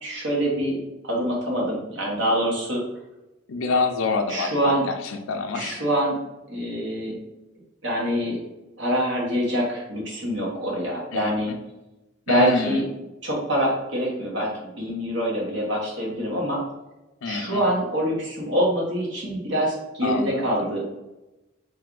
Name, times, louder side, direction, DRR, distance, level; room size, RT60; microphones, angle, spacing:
voice 1, 0.0-2.8 4.3-4.8 5.5-6.2 6.5-7.2 7.8-8.4 8.8-11.5 12.3-12.8 13.2-16.6 17.3-20.8, equal, 60° right, -3 dB, 1.1 m, -25 dB
voice 2, 3.5-5.8 11.1-11.6 12.3-12.8 17.2-17.6 20.0-20.7, left 3 dB, 85° left, 4 dB, 0.5 m, -27 dB
3.4 x 2.6 x 3.7 m, 0.99 s
head